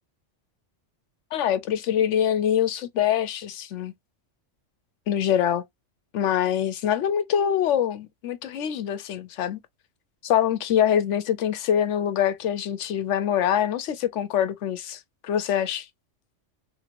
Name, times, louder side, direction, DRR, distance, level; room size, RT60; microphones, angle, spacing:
voice 1, 1.3-3.9 5.1-5.6 6.1-9.6 10.2-15.9, left 9 dB, 80° left, 0.9 m, -24 dB
3.1 x 2.9 x 2.5 m
omnidirectional pair, 1.3 m